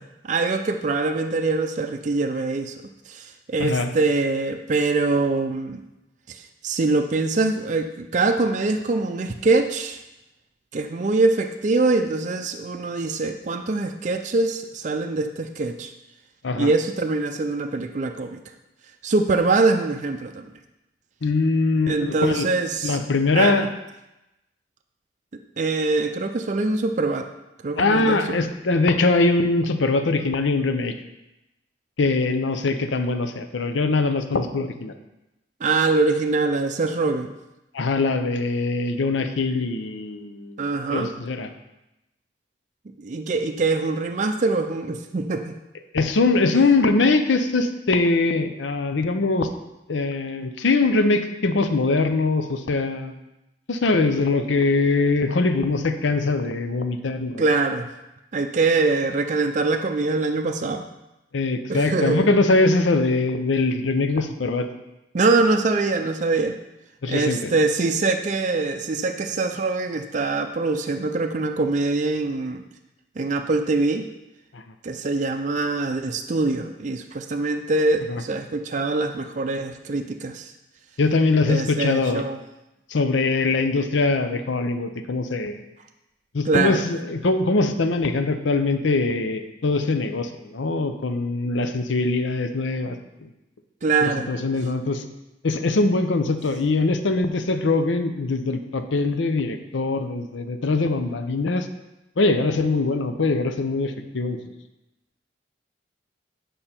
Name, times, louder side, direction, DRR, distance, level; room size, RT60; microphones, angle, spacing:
voice 1, 0.2-2.8 3.1-5.8 6.3-10.0 10.7-15.9 16.6-18.4 19.0-20.4 21.9-23.0 23.3-23.6 25.6-27.3 27.6-28.4 35.6-37.4 40.6-41.1 43.0-45.6 57.4-57.9 58.3-60.9 61.7-62.3 65.1-66.6 67.1-72.6 73.2-74.1 74.8-80.5 81.5-82.4 86.5-86.8 93.8-94.3, right 3 dB, 40° right, 5 dB, 0.4 m, -23 dB
voice 2, 3.6-3.9 16.4-16.7 21.2-22.5 22.8-23.7 27.8-30.9 32.0-34.9 37.7-40.6 40.9-41.5 45.9-49.5 49.9-53.2 53.7-57.4 61.3-64.7 67.0-67.5 74.5-74.6 78.1-78.2 81.0-82.2 82.9-85.6 86.3-93.0 93.2-93.3 94.0-95.0 95.4-101.7 102.2-104.4, left 3 dB, 80° left, 8 dB, 0.7 m, -22 dB
8.8 x 5.3 x 4.4 m, 0.95 s
head